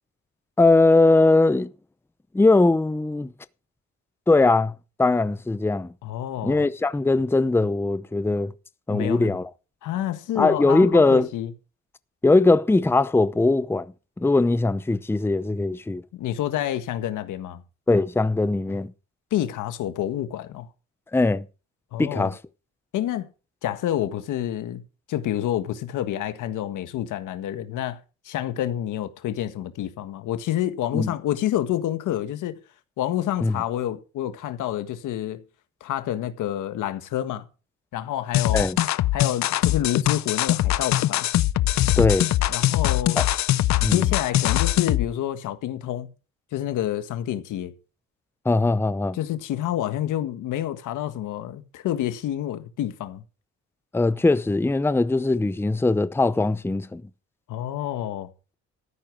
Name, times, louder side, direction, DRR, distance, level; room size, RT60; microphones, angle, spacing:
voice 1, 0.6-1.7 2.3-3.3 4.3-4.7 5.0-5.9 6.4-8.5 8.9-9.5 10.4-11.3 12.2-13.9 14.2-16.0 17.9-18.9 21.1-21.4 22.0-22.4 30.9-31.1 33.4-33.6 38.5-38.8 42.0-42.3 43.2-43.3 43.8-44.1 48.5-49.2 53.9-57.0, left 2 dB, 10° left, 0.7 m, -20 dB
voice 2, 6.0-6.7 8.9-9.4 9.8-11.5 16.1-17.6 19.3-20.7 21.9-22.3 22.9-23.3 23.6-24.8 25.1-28.0 28.2-32.6 33.0-35.4 35.8-37.4 37.9-38.7 39.1-41.3 42.5-43.2 43.9-46.1 46.5-47.7 49.1-53.2 57.5-58.3, left 12 dB, 85° left, 1.6 m, -28 dB
sound 1, 38.3-45.1, left 14 dB, 65° left, 0.6 m, -22 dB
13.5 x 10.0 x 4.7 m
cardioid pair, 90°, 30 cm